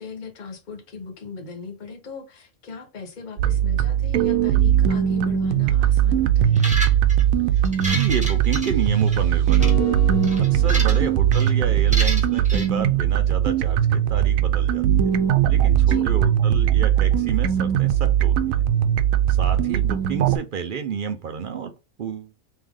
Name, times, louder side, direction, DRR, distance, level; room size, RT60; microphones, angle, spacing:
voice 1, 0.0-6.6 10.8-11.1 15.9-16.2, left 4 dB, 40° left, 1.0 m, -38 dB
sound 1, 3.4-20.4, right 10 dB, 85° right, 1.0 m, -19 dB
sound 2, 6.5-7.2 7.6-9.2 9.5-9.7 10.2-11.0 11.3-11.5 11.9-12.7, equal, 5° right, 1.1 m, -30 dB
voice 2, 7.9-10.0 10.4-15.1 15.5-18.6 19.3-21.7 22.0-22.3, right 6 dB, 60° right, 0.5 m, -30 dB
sound 3, 9.6-11.9, left 10 dB, 80° left, 1.0 m, -37 dB
3.4 x 3.1 x 3.6 m
omnidirectional pair, 1.4 m